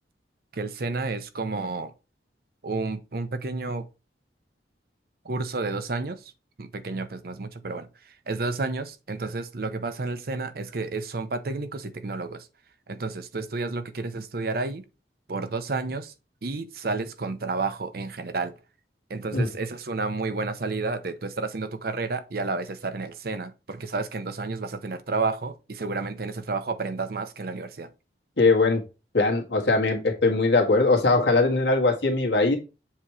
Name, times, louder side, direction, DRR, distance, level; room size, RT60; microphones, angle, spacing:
voice 1, 0.5-1.9 2.6-3.9 5.2-6.3 6.6-12.5 12.9-14.8 15.3-16.1 16.4-18.5 19.1-27.9, right 3 dB, 60° right, 0.7 m, -31 dB
voice 2, 28.4-28.8 29.1-32.6, left 3 dB, 80° left, 1.9 m, -21 dB
7.4 x 3.0 x 4.8 m
head